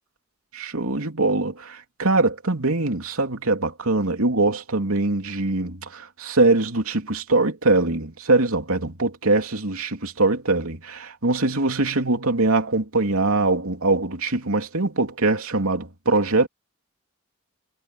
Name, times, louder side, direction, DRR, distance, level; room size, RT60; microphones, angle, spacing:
voice 1, 0.5-16.5, right 2 dB, 80° right, 2.9 m, -22 dB
head